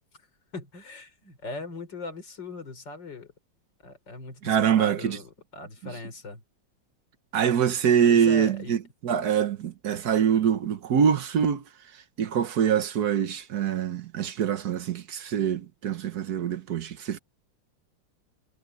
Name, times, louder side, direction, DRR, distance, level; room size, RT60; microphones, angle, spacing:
voice 1, 0.5-3.3 3.8-6.4 8.1-8.8, left 3 dB, 65° left, 5.1 m, -39 dB
voice 2, 4.4-5.2 7.3-11.6 12.2-17.2, right 8 dB, 60° right, 1.4 m, -24 dB
omnidirectional pair, 2.1 m